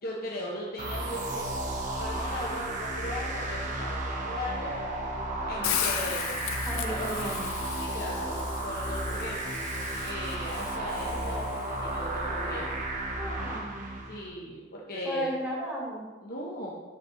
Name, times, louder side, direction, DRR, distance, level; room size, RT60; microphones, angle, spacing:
voice 1, 0.0-1.6 2.0-4.7 5.5-6.5 6.8-7.3 7.8-9.4 10.0-12.7 14.1-15.3 16.2-16.7, left 1 dB, 45° left, -4 dB, 1.0 m, -38 dB
sound 1, 0.8-14.3, right 1 dB, 40° right, 1.1 m, -33 dB
Hiss, 5.6-11.7, left 9 dB, 90° left, 0.6 m, -36 dB
voice 2, 6.6-7.5 13.1-14.0 15.0-16.1, equal, 10° right, -5 dB, 1.6 m, -34 dB
5.6 x 5.2 x 6.3 m, 1.3 s
head